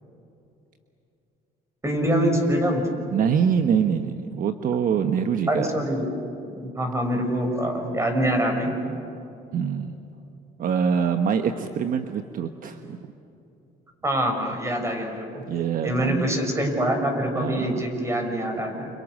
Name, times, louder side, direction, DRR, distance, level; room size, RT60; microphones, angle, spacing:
voice 1, 1.8-2.9 5.5-6.0 6.5-8.7 14.0-15.4 15.8-18.9, equal, 15° right, 3 dB, 6.3 m, -25 dB
voice 2, 3.1-5.7 9.5-10.0 10.6-13.0 15.4-16.4 17.4-17.8, right 7 dB, 55° right, 7 dB, 1.2 m, -24 dB
30.0 x 29.5 x 6.5 m, 2.8 s
cardioid pair, 110°, 17 cm